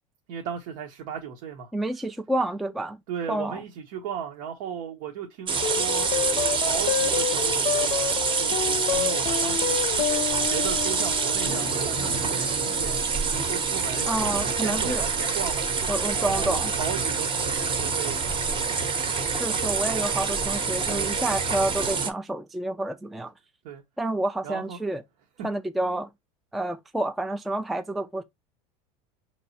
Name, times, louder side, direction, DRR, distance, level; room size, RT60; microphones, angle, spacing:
voice 1, 0.3-1.7 3.1-6.1 6.5-10.0 10.5-15.9 16.1-18.9 20.9-21.4 23.6-23.8 24.4-24.8, right 8 dB, 70° right, 0.9 m, -37 dB
voice 2, 1.7-3.0 3.3-3.6 14.1-15.0 15.9-16.7 19.3-23.3 24.0-25.0 25.4-26.1 26.5-28.2, right 1 dB, ahead, 0.3 m, -29 dB
sound 1, 5.5-22.1, right 5 dB, 25° right, 0.8 m, -26 dB
sound 2, 5.6-14.2, left 10 dB, 35° left, 0.6 m, -30 dB
4.5 x 3.1 x 2.7 m
supercardioid pair, 110°, 18 cm